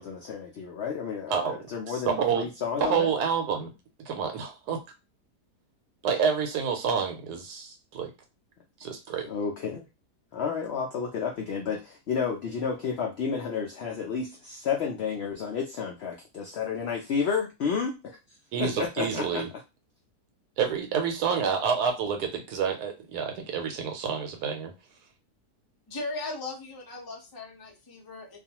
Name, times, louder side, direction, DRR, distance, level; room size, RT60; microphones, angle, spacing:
voice 1, 0.0-3.1 9.2-9.9 10.3-17.9 18.6-19.4, left 6 dB, 80° left, 1 dB, 0.5 m, -31 dB
voice 2, 2.1-2.5 2.8-3.7 4.1-4.8 6.0-8.1 8.8-9.3 18.5-19.5 20.6-24.7, right 6 dB, 85° right, 5 dB, 1.1 m, -28 dB
voice 3, 25.9-28.4, left 2 dB, 30° left, -1 dB, 0.4 m, -37 dB
2.5 x 2.3 x 2.8 m, 0.26 s
omnidirectional pair, 1.7 m